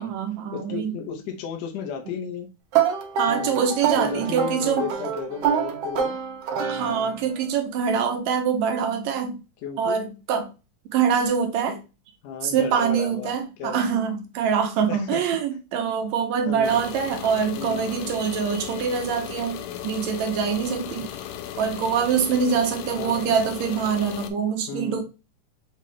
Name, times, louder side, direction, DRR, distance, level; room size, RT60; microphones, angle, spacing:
voice 1, 0.0-0.9 3.2-4.9 6.6-9.4 9.8-10.5 10.9-11.8 12.4-21.1 21.6-25.0, right 7 dB, 75° right, 5 dB, 1.8 m, -24 dB
voice 2, 0.5-2.5 3.3-3.6 4.0-6.1 6.8-7.2 9.6-10.0 12.2-14.0 14.9-15.2 16.5-16.8 17.6-17.9 21.0-21.2 23.0-23.4 24.7-25.0, left 6 dB, 70° left, 2 dB, 1.8 m, -34 dB
sound 1, 2.7-7.4, right 7 dB, 90° right, 1.3 m, -26 dB
sound 2, 16.6-24.3, left 11 dB, 85° left, 2.2 m, -36 dB
6.7 x 2.4 x 3.1 m, 0.29 s
omnidirectional pair, 3.7 m